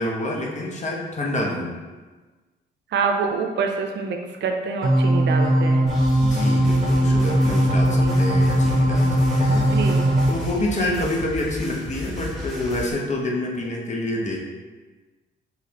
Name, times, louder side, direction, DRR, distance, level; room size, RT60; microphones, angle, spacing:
voice 1, 0.0-1.7 6.2-9.7 10.3-14.4, left 1 dB, 35° left, -1 dB, 0.9 m, -27 dB
voice 2, 2.9-5.9 8.0-8.2 9.5-10.0 10.8-11.0, right 5 dB, 60° right, 4 dB, 0.6 m, -26 dB
sound 1, 4.8-10.3, right 1 dB, 45° right, 1.1 m, -19 dB
sound 2, 5.9-12.9, left 1 dB, ahead, 1.4 m, -34 dB
4.8 x 3.3 x 2.9 m, 1.3 s
cardioid pair, 90°, 20 cm